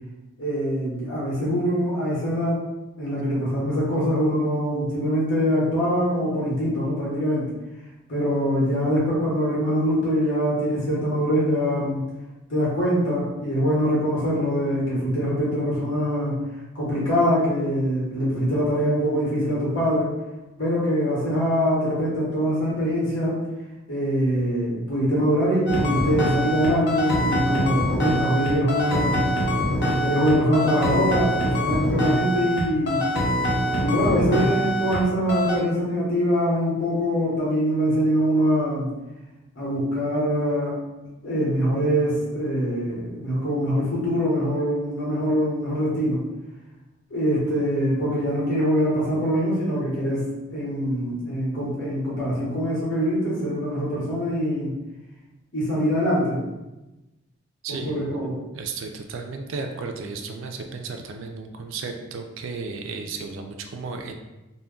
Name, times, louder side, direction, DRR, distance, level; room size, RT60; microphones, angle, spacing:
voice 1, 0.4-2.6 3.0-7.4 8.1-12.0 12.5-16.4 16.7-20.1 20.6-23.4 23.9-29.3 30.0-33.0 33.8-38.9 39.5-40.8 41.2-46.2 47.1-54.7 55.5-56.4 57.7-58.3, equal, 70° left, -7 dB, 1.0 m, -23 dB
sound 1, 25.7-35.0 35.3-35.6, equal, 50° left, 0.5 m, -24 dB
voice 2, 57.6-58.1 58.5-64.1, right 4 dB, 65° right, 5 dB, 0.3 m, -34 dB
2.2 x 2.1 x 3.6 m, 1.0 s
head